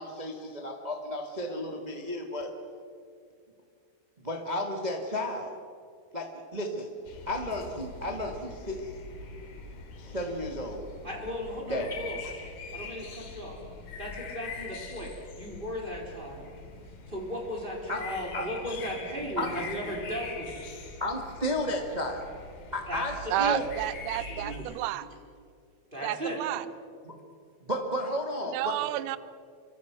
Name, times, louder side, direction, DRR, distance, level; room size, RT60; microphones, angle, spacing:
voice 1, 0.0-2.5 4.2-5.5 6.1-6.9 7.3-8.9 10.0-10.8 11.7-12.0 17.9-18.1 18.3-18.5 19.4-19.5 21.0-22.3 22.7-23.6 27.0-27.1 27.7-28.7, left 1 dB, 40° right, 2 dB, 0.5 m, -33 dB
sound 1, 7.1-24.6, left 3 dB, 80° left, 4.4 m, -43 dB
voice 2, 11.0-12.2 12.7-13.6 14.0-16.4 17.1-20.8 22.9-23.5 24.4-24.8 25.9-26.4, equal, 15° right, -1 dB, 4.2 m, -36 dB
voice 3, 23.3-25.0 26.0-26.7 28.5-29.2, right 15 dB, 80° right, 15 dB, 1.9 m, -30 dB
26.5 x 24.5 x 6.2 m, 2.2 s
omnidirectional pair, 4.5 m